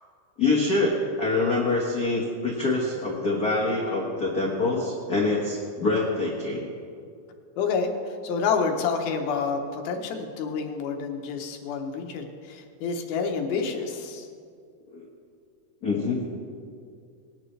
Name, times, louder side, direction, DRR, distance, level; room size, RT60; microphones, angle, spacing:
voice 1, 0.4-6.7 14.9-15.0 15.8-16.2, left 3 dB, 65° left, -5 dB, 0.9 m, -25 dB
voice 2, 7.6-14.3, left 5 dB, 80° left, 4 dB, 2.9 m, -28 dB
19.0 x 11.5 x 3.3 m, 2.3 s
omnidirectional pair, 4.3 m